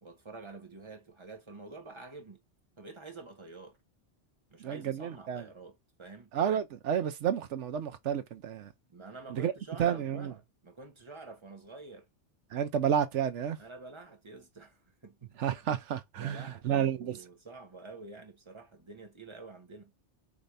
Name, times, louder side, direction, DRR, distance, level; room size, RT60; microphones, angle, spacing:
voice 1, 0.0-2.4 2.8-3.8 4.5-6.3 8.9-12.1 13.6-15.3 16.2-19.9, right 3 dB, 25° right, 1.2 m, -48 dB
voice 2, 4.6-5.4 6.3-8.7 9.3-9.5 9.8-10.3 12.5-13.6 15.4-17.2, right 9 dB, 80° right, 1.1 m, -31 dB
5.1 x 3.2 x 2.6 m
omnidirectional pair, 1.2 m